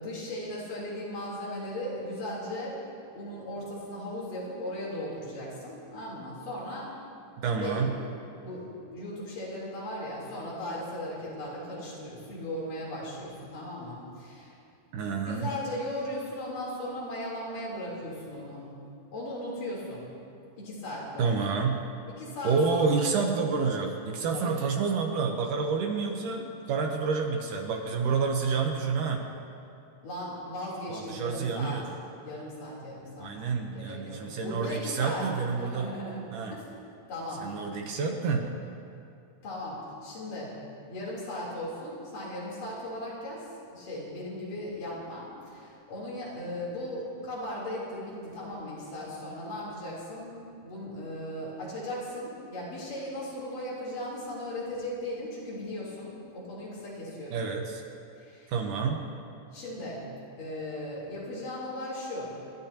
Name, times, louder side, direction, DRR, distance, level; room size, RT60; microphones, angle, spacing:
voice 1, 0.0-2.9 3.1-7.0 7.6-8.0 8.4-14.5 15.3-18.7 19.1-20.1 20.6-21.5 22.1-23.1 24.3-24.5 30.0-31.8 32.2-33.4 33.7-35.2 35.6-36.6 37.1-37.5 39.4-40.6 40.9-57.4 58.2-58.5 59.5-60.1 60.4-62.3, left 1 dB, 65° left, -6 dB, 5.1 m, -37 dB
voice 2, 7.4-7.9 14.9-15.5 21.2-21.8 22.4-29.2 30.9-31.9 33.2-35.9 36.3-36.6 37.3-38.5 57.3-57.8 58.5-59.0, right 5 dB, 70° right, 2 dB, 2.4 m, -29 dB
29.5 x 12.5 x 2.9 m, 2.5 s
omnidirectional pair, 4.2 m